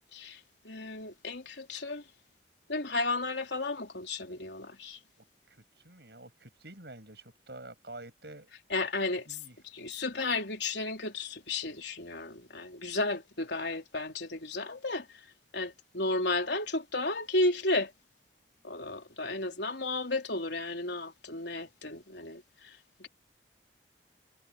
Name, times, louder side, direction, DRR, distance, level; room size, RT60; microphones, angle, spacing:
voice 1, 0.6-2.0 2.7-5.0 8.7-9.4 9.7-15.1 15.5-17.9 18.6-22.7 23.0-23.1, left 2 dB, 75° left, 3.6 m, -33 dB
voice 2, 5.5-8.5 9.3-9.6, right 2 dB, 65° right, 7.7 m, -48 dB
head